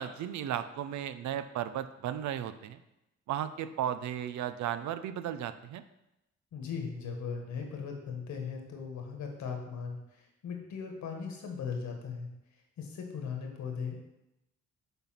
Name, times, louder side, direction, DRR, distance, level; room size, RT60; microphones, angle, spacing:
voice 1, 0.0-2.8 3.3-5.8, right 10 dB, 70° right, 12 dB, 0.6 m, -35 dB
voice 2, 6.5-12.3 12.8-14.0, left 6 dB, 70° left, 2 dB, 1.7 m, -38 dB
6.8 x 4.1 x 5.9 m, 0.90 s
cardioid pair, 90°, 30 cm